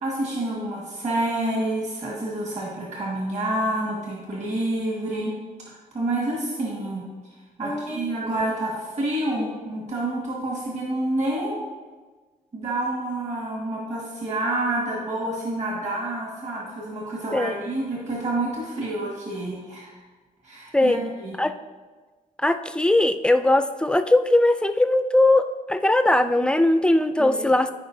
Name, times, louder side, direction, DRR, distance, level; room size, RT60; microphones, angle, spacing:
voice 1, 0.0-5.3 5.7-11.6 12.5-20.0 20.4-21.4 27.2-27.4, right 1 dB, 50° right, -3 dB, 1.6 m, -28 dB
voice 2, 7.6-8.4 17.3-17.5 20.7-21.0 21.4-21.5 22.4-27.7, left 1 dB, 5° left, 9 dB, 0.3 m, -20 dB
14.0 x 5.0 x 2.6 m, 1.3 s
wide cardioid pair, 145°, 15 cm